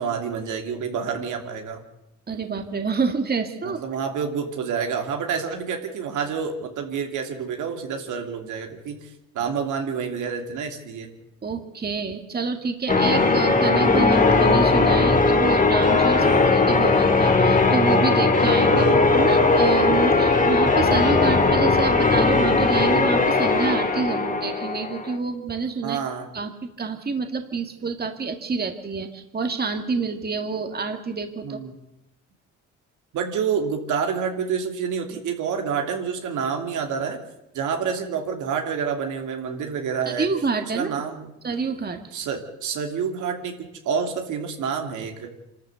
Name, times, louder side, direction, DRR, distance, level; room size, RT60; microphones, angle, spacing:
voice 1, 0.0-1.8 3.6-9.1 9.3-11.1 16.2-16.5 18.7-19.0 25.8-26.3 31.4-31.7 33.1-37.2 37.5-40.3 40.7-41.3 42.1-43.6 43.8-45.3, right 6 dB, 80° right, 4 dB, 2.9 m, -28 dB
voice 2, 2.3-3.8 11.4-16.3 16.5-26.0 26.3-31.6 40.1-41.0 41.4-42.0, right 4 dB, 30° right, 6 dB, 2.0 m, -27 dB
Church bell, 12.9-25.2, left 3 dB, 25° left, 2.2 m, -18 dB
25.5 x 13.0 x 8.1 m, 0.90 s
cardioid pair, 90°, 30 cm